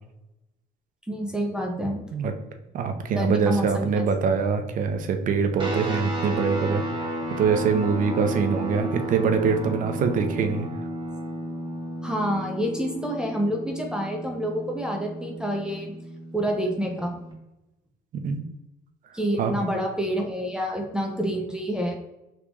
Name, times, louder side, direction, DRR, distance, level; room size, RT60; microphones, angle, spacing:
voice 1, 1.1-2.0 3.2-4.0 12.0-15.9 16.3-17.2 19.1-22.0, equal, 5° right, 0 dB, 0.5 m, -28 dB
voice 2, 2.7-7.1 7.4-10.7 18.1-18.4 19.4-19.5, right 6 dB, 50° right, 7 dB, 0.5 m, -24 dB
sound 1, 5.6-17.3, equal, 30° right, 1.0 m, -33 dB
3.5 x 2.4 x 3.0 m, 0.94 s
cardioid pair, 110°, 17 cm